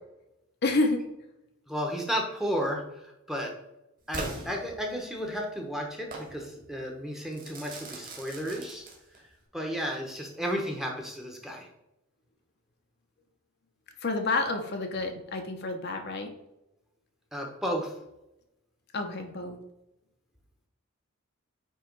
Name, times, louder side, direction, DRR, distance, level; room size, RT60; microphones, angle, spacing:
voice 1, 0.6-1.0 14.0-16.3 18.9-19.6, left 3 dB, 45° left, 4 dB, 0.8 m, -29 dB
voice 2, 1.7-3.5 4.1-8.8 9.2-9.3 9.5-11.7 17.3-17.9, equal, ahead, 1 dB, 1.1 m, -33 dB
Crackle / Fireworks, 4.1-5.3 6.1-6.3 7.3-9.3, right 2 dB, 40° right, 2.1 m, -40 dB
9.2 x 3.2 x 4.6 m, 0.89 s
head